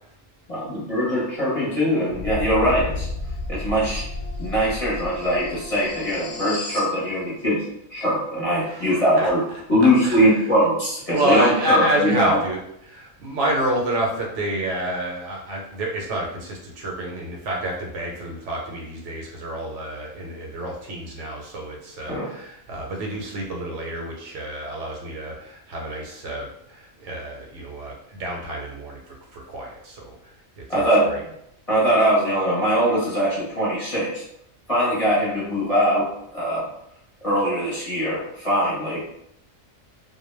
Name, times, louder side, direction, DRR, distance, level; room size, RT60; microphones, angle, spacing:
voice 1, 0.5-3.1 3.5-4.0 4.4-7.6 7.9-9.4 9.7-12.4 22.1-22.3 30.7-31.1 31.7-34.2 34.7-36.1 36.3-36.7 37.2-39.0, equal, 30° left, -8 dB, 0.7 m, -21 dB
sound 1, 2.1-6.9, left 2 dB, 70° left, 0.8 m, -32 dB
voice 2, 8.6-10.5 11.1-30.1 30.6-31.2, right 1 dB, 70° right, -1 dB, 0.9 m, -29 dB
2.2 x 2.1 x 3.1 m, 0.75 s
omnidirectional pair, 1.4 m